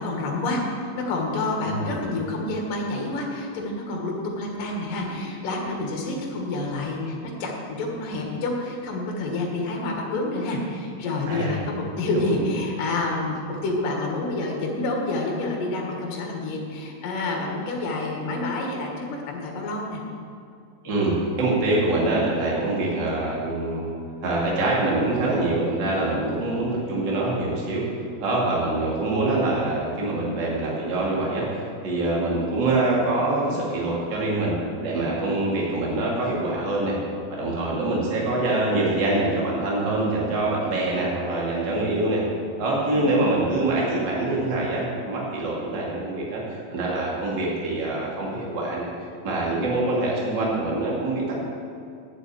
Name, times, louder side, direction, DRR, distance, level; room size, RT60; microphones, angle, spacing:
voice 1, 0.0-20.0 42.8-43.2, left 2 dB, 70° left, 0 dB, 3.2 m, -28 dB
voice 2, 11.3-11.6 12.2-12.4 20.8-23.9 24.2-27.8 28.2-34.5 34.8-37.0 37.3-42.2 42.6-48.9 49.2-51.4, right 2 dB, 35° right, -4 dB, 2.5 m, -25 dB
9.5 x 7.2 x 8.3 m, 2.5 s
omnidirectional pair, 4.1 m